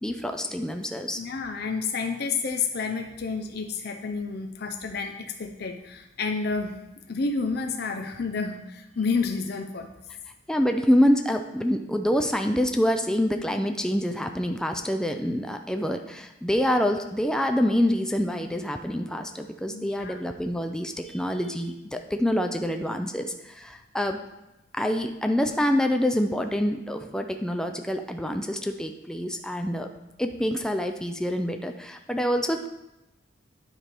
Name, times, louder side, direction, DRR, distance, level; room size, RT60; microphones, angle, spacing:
voice 1, 0.0-1.2 10.5-24.2 24.7-29.9 30.2-32.7, equal, 5° left, 5 dB, 0.3 m, -26 dB
voice 2, 1.2-6.7 7.1-9.9 19.7-20.2, left 4 dB, 60° left, 4 dB, 0.5 m, -30 dB
9.7 x 3.3 x 4.4 m, 0.96 s
head